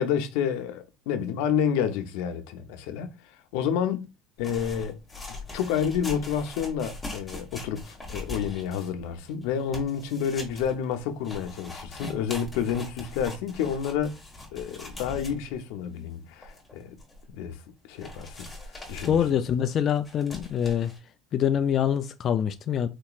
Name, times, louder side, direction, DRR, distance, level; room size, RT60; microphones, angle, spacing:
voice 1, 0.0-4.1 4.4-5.0 5.3-14.1 14.5-17.0 17.3-18.5 18.9-19.2, left 8 dB, 80° left, 0.6 m, -29 dB
sound 1, 4.4-15.6 16.1-16.2 16.4-17.2 17.5-17.6 18.0-21.0, left 2 dB, 10° left, 1.4 m, -41 dB
voice 2, 19.0-20.9 21.3-22.9, left 9 dB, 35° left, 0.3 m, -25 dB
4.3 x 2.9 x 2.4 m
cardioid pair, 145°, 0 cm